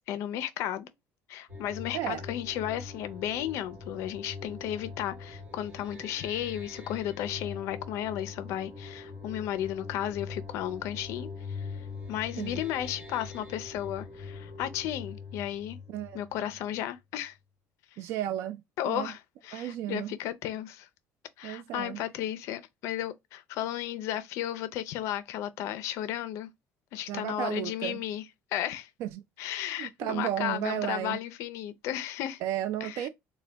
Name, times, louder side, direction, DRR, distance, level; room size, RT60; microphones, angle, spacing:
voice 1, 0.1-0.9 1.3-11.7 12.1-15.8 16.1-17.4 18.8-20.9 21.4-26.5 26.9-28.2 28.5-28.9 29.4-32.4 32.8-33.1, left 12 dB, 65° left, 0.5 m, -34 dB
sound 1, 1.5-17.0, left 4 dB, 25° right, 1.0 m, -43 dB
voice 2, 15.9-16.2 18.0-19.1 19.5-20.1 21.4-22.0 27.1-28.0 29.0-29.2 29.8-31.2 32.4-33.1, right 12 dB, 65° right, 0.3 m, -33 dB
3.9 x 2.1 x 3.3 m
cardioid pair, 165°, 5 cm